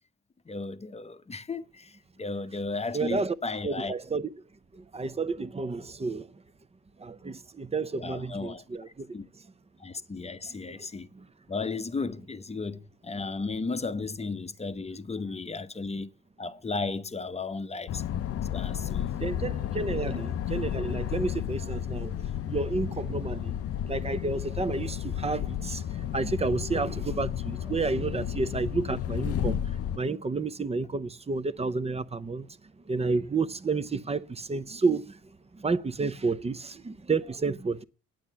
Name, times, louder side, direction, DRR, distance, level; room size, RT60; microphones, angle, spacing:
voice 1, 0.5-3.9 8.0-8.6 9.1-9.3 9.8-11.1 11.5-16.1 16.4-18.0 18.5-19.2 19.9-20.0, left 3 dB, 20° left, 0.8 m, -34 dB
voice 2, 2.9-3.3 3.6-4.3 4.7-6.3 7.0-9.2 10.4-10.5 11.1-11.2 19.2-22.1 22.4-23.5 23.9-32.5 32.9-35.2 35.5-37.8, right 3 dB, 20° right, 0.6 m, -30 dB
sound 1, 17.9-30.0, left 10 dB, 50° left, 0.5 m, -32 dB
9.1 x 7.6 x 6.8 m
cardioid pair, 90°, 30 cm